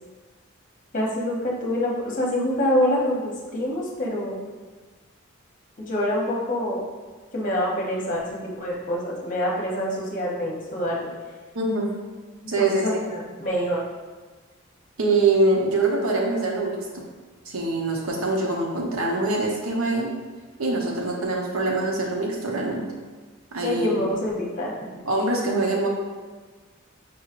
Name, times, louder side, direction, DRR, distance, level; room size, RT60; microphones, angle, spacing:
voice 1, 0.9-4.4 5.8-6.8 7.3-11.1 12.6-13.8 23.6-24.7, left 1 dB, 40° left, -3 dB, 0.8 m, -26 dB
voice 2, 11.5-11.9 12.5-13.0 15.0-17.0 17.5-20.1 20.6-22.9 23.5-24.0 25.1-25.9, right 2 dB, 85° right, -1 dB, 0.8 m, -24 dB
5.1 x 3.0 x 2.5 m, 1.4 s
head